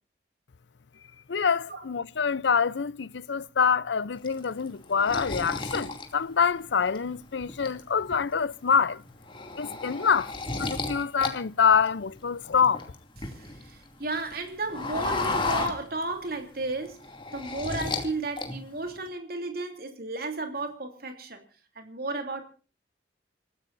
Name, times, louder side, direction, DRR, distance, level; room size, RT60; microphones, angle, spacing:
voice 1, 1.3-9.0 9.6-10.3 10.6-12.8, left 6 dB, 80° left, 0.6 m, -25 dB
sound 1, 4.2-7.0 7.4-8.1 8.5-8.7 9.1-11.3 11.6-13.7 14.0-16.3 16.7-18.1 18.4-19.0, left 3 dB, 30° left, 2.6 m, -33 dB
voice 2, 13.4-17.0 17.3-21.4 21.8-22.4, right 2 dB, 55° right, 3.1 m, -33 dB
28.0 x 15.0 x 2.6 m
head